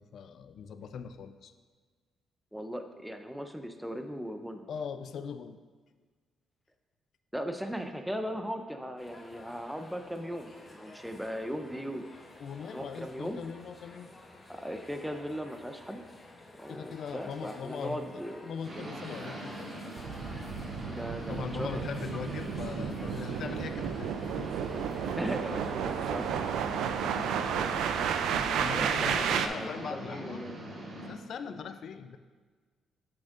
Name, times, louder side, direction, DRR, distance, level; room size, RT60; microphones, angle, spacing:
voice 1, 0.0-1.5 4.7-5.6 12.4-14.1 16.7-19.8 20.5-24.6 26.8-27.7 28.5-30.4 31.1-32.2, left 6 dB, 65° left, 10 dB, 0.4 m, -41 dB
voice 2, 2.5-4.6 7.3-12.1 12.6-13.4 14.5-16.0 16.6-19.0 20.9-21.8 25.2-26.4 28.7-30.5 31.4-31.6, equal, ahead, 6 dB, 0.5 m, -38 dB
sound 1, 9.0-28.2, left 2 dB, 25° left, 0.9 m, -51 dB
sound 2, 18.6-31.1, right 1 dB, 45° right, 1.8 m, -42 dB
sound 3, 20.0-29.5, right 8 dB, 80° right, 0.4 m, -32 dB
7.8 x 7.0 x 2.5 m, 1.5 s
cardioid pair, 90°, 0 cm